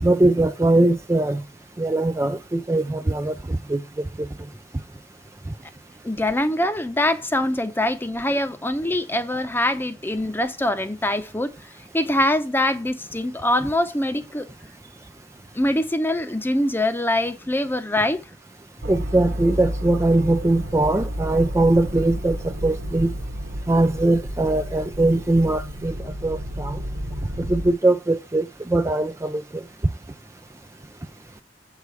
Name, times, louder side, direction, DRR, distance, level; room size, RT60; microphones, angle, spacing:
voice 1, 0.0-1.4 1.8-3.3 3.7-3.8 18.9-22.4 22.6-23.1 23.7-25.9 26.2-26.8 27.5-28.5 28.7-29.4, right 2 dB, 15° right, 0.4 m, -20 dB
voice 2, 6.0-11.5 11.9-14.5 15.5-18.2, left 1 dB, 10° left, 0.8 m, -23 dB
sound 1, 18.8-27.7, equal, 85° right, 1.2 m, -31 dB
8.0 x 4.9 x 4.7 m
head